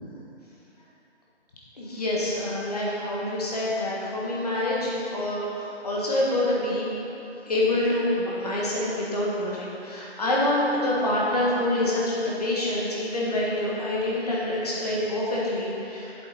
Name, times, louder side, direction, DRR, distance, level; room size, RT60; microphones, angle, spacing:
voice 1, 1.8-6.9 7.5-16.3, left 1 dB, 35° left, -5 dB, 1.5 m, -26 dB
8.0 x 7.6 x 4.1 m, 2.9 s
hypercardioid pair, 170°, 34 cm